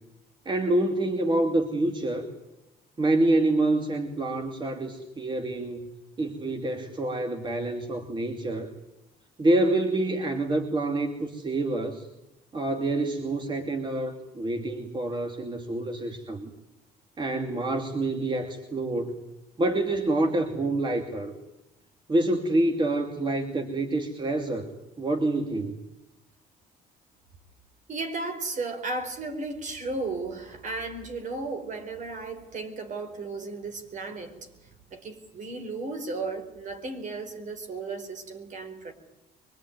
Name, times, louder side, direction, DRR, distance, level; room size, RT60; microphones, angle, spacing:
voice 1, 0.4-2.3 3.0-5.9 6.2-8.7 9.4-12.1 12.5-16.5 17.2-19.1 19.6-21.3 22.1-24.7 25.0-25.8, right 2 dB, 25° right, 5 dB, 2.6 m, -27 dB
voice 2, 27.9-34.5 34.9-38.9, right 3 dB, 45° right, 7 dB, 4.5 m, -34 dB
24.5 x 21.5 x 9.5 m, 0.89 s
cardioid pair, 110°, 17 cm